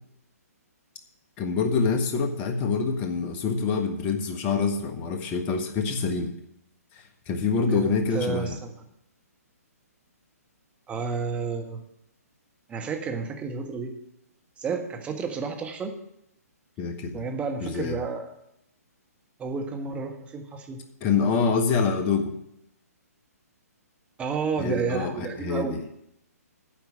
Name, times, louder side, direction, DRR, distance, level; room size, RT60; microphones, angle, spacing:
voice 1, 1.4-6.3 6.9-8.6 16.8-17.2 17.6-18.0 21.0-22.3 24.6-25.8, left 5 dB, 25° left, 5 dB, 1.3 m, -26 dB
voice 2, 7.7-8.7 10.9-11.8 12.7-13.9 14.6-15.9 17.1-18.3 19.4-20.8 24.2-25.8, right 5 dB, 15° right, 4 dB, 1.3 m, -31 dB
10.0 x 6.6 x 8.7 m, 0.79 s
figure-of-eight pair, 135°, 9 cm